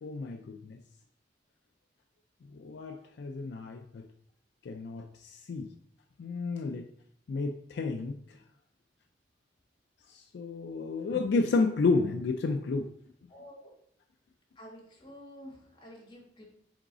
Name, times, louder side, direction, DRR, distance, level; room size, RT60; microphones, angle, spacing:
voice 1, 0.0-0.8 2.5-4.0 4.7-5.7 6.2-6.9 7.3-8.2 10.1-12.9, left 3 dB, 65° left, 5 dB, 0.3 m, -31 dB
voice 2, 13.3-13.7 14.6-16.4, equal, 25° left, -2 dB, 1.3 m, -49 dB
3.9 x 3.6 x 3.7 m, 0.66 s
head